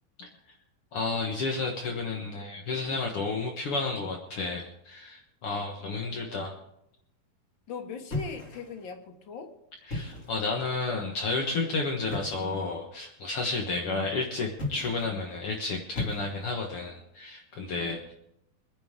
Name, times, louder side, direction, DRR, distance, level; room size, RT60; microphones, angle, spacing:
voice 1, 0.9-6.5 9.9-18.1, left 3 dB, 70° left, 2 dB, 1.3 m, -31 dB
voice 2, 6.0-6.6 7.7-9.5, left 4 dB, 55° left, 4 dB, 1.4 m, -40 dB
sound 1, 8.1-8.9 9.8-10.5 12.1-12.5 14.5-15.2 15.9-16.7, left 2 dB, 30° left, 1.6 m, -36 dB
24.5 x 10.0 x 3.7 m, 0.81 s
omnidirectional pair, 4.4 m